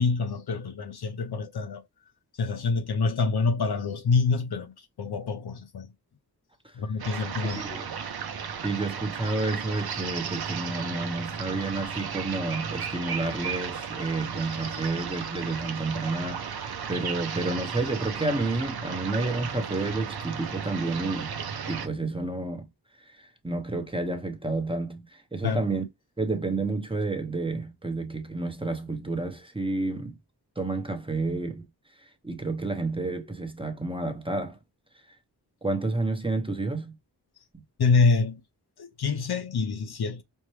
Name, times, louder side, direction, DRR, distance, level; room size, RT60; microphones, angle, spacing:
voice 1, 0.0-1.8 2.4-5.9 6.8-7.6 25.4-25.6 37.8-38.4 38.8-40.2, left 4 dB, 70° left, 0.7 m, -26 dB
sound 1, 7.0-21.9, right 7 dB, 70° right, 0.7 m, -34 dB
voice 2, 7.6-7.9 8.6-21.3 21.7-22.7 23.0-25.9 26.2-30.2 30.6-31.6 32.2-34.6 35.6-37.0 37.5-37.6, right 2 dB, 15° right, 0.8 m, -30 dB
5.4 x 2.1 x 3.1 m
wide cardioid pair, 75°, 39 cm